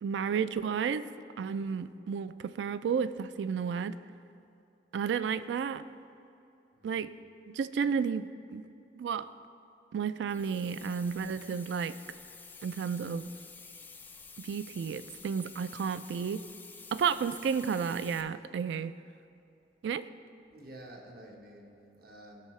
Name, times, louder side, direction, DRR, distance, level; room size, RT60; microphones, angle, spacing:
voice 1, 0.0-1.1 1.4-4.0 4.9-5.9 6.8-7.2 7.5-8.6 9.0-9.3 9.9-12.0 12.6-13.3 14.4-16.5 16.9-19.0 19.8-20.1, right 6 dB, 80° right, 14 dB, 0.3 m, -32 dB
sound 1, 10.3-18.2, left 4 dB, 10° left, 0.4 m, -50 dB
voice 2, 20.5-22.5, right 1 dB, 60° right, 1 dB, 1.1 m, -50 dB
14.5 x 5.6 x 3.1 m, 2.7 s
head